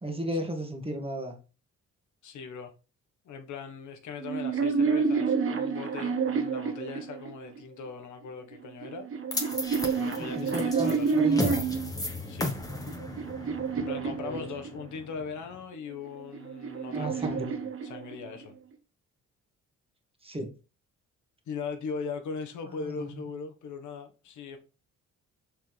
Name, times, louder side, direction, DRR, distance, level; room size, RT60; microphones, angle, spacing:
voice 1, 0.0-1.4 10.2-11.7 14.2-14.5 16.9-17.7 20.2-20.5 22.8-23.3, equal, 20° right, 2.0 m, -34 dB
voice 2, 2.2-2.7 3.2-9.1 9.8-11.4 12.3-12.5 13.8-17.4 17.8-18.5 21.5-24.6, left 5 dB, 75° left, 1.4 m, -39 dB
sound 1, 4.2-7.6 8.5-11.9 12.6-15.0 16.0-18.4, right 5 dB, 45° right, 1.3 m, -29 dB
sound 2, 9.3-15.6, left 2 dB, 10° left, 1.6 m, -35 dB
6.7 x 5.8 x 3.4 m
cardioid pair, 90°, 30 cm